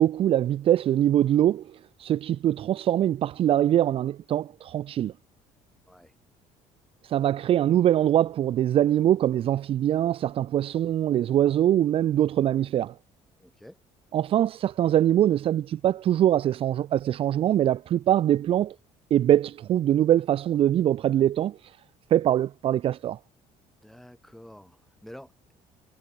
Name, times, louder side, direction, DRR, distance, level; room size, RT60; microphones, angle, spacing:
voice 1, 0.0-1.7 2.0-5.1 7.1-12.9 14.1-18.7 19.1-21.6 22.1-23.2, right 11 dB, 45° right, 1.0 m, -23 dB
voice 2, 13.4-13.8 23.8-25.5, equal, ahead, 8.0 m, -48 dB
cardioid pair, 160°, 13 cm